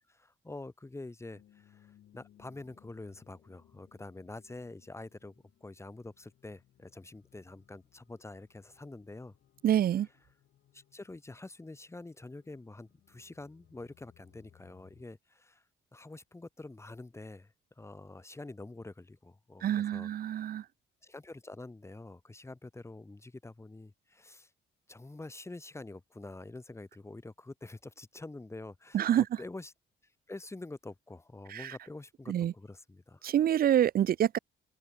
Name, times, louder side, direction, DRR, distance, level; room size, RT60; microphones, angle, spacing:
voice 1, 0.1-5.3 5.6-9.3 10.7-15.6 15.9-20.5 21.0-24.5 24.9-29.7 30.3-33.3, left 2 dB, 15° left, 1.1 m, -47 dB
sound 1, 1.3-15.0, left 11 dB, 70° left, 4.7 m, -65 dB
voice 2, 9.6-10.1 19.6-20.6 28.9-29.2 31.5-31.8 32.3-32.5 33.2-34.4, right 10 dB, 50° right, 0.4 m, -27 dB
cardioid pair, 90°, 20 cm